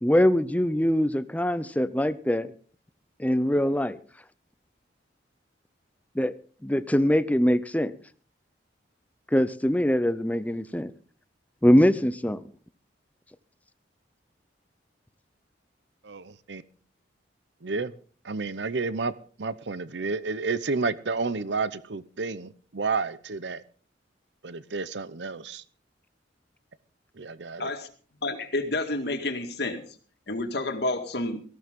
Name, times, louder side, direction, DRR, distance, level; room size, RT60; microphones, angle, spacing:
voice 1, 0.0-2.5 3.2-4.0 6.1-6.3 6.6-8.0 9.3-10.9 11.6-12.5, equal, 10° left, 0.6 m, -23 dB
voice 2, 16.0-16.6 17.6-17.9 18.2-19.1 19.4-23.6 24.4-25.6 27.2-27.7, right 4 dB, 70° right, 0.8 m, -30 dB
voice 3, 28.2-29.8 30.3-31.4, left 2 dB, 60° left, 2.0 m, -29 dB
18.0 x 15.0 x 3.7 m
head